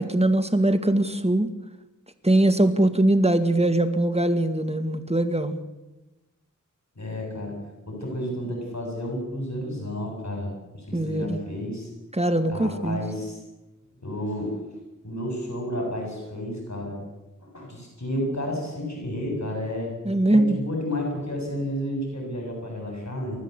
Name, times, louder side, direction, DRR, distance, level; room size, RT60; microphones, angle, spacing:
voice 1, 0.0-1.5 2.2-5.6 10.9-11.4 12.1-13.0 20.0-20.6, right 1 dB, 20° right, 9 dB, 2.1 m, -21 dB
voice 2, 7.0-7.5 7.9-11.9 12.5-13.4 14.0-14.5 15.0-17.0 17.5-19.9 20.3-23.4, left 1 dB, 60° left, 1 dB, 7.8 m, -31 dB
29.5 x 13.0 x 8.2 m, 1.0 s
wide cardioid pair, 60°, 31 cm